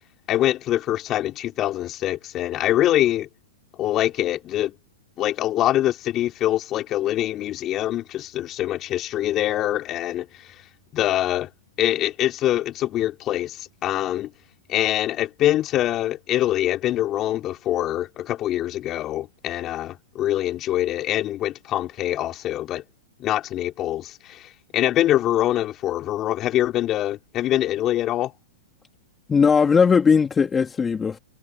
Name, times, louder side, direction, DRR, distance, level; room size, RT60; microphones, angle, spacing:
voice 1, 0.3-3.3 3.8-4.7 5.2-10.3 10.9-11.5 11.8-14.3 14.7-22.8 23.2-28.3, left 13 dB, 30° left, 4.0 m, -24 dB
voice 2, 29.3-31.2, left 6 dB, 15° left, 3.0 m, -18 dB
hypercardioid pair, 130°, 0 cm